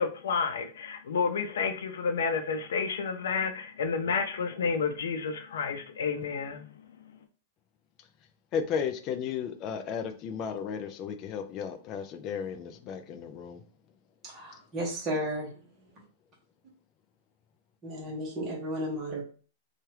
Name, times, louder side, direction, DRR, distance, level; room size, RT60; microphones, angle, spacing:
voice 1, 0.0-6.6, left 5 dB, 90° left, 0.5 m, -30 dB
voice 2, 8.5-13.6, left 7 dB, 25° left, 0.3 m, -34 dB
voice 3, 14.2-15.5 17.8-19.2, right 1 dB, 15° right, 1.0 m, -33 dB
2.8 x 2.3 x 3.2 m
supercardioid pair, 175°, 0 cm